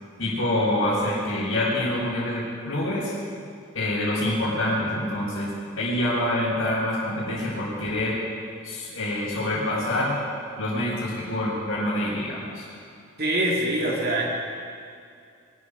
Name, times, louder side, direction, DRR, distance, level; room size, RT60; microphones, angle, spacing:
voice 1, 0.2-3.1 3.7-8.2 8.6-10.2 10.6-12.7, left 1 dB, 75° left, -10 dB, 4.8 m, -26 dB
voice 2, 13.2-14.3, right 1 dB, 50° right, -2 dB, 2.5 m, -24 dB
22.0 x 12.5 x 5.0 m, 2.3 s
head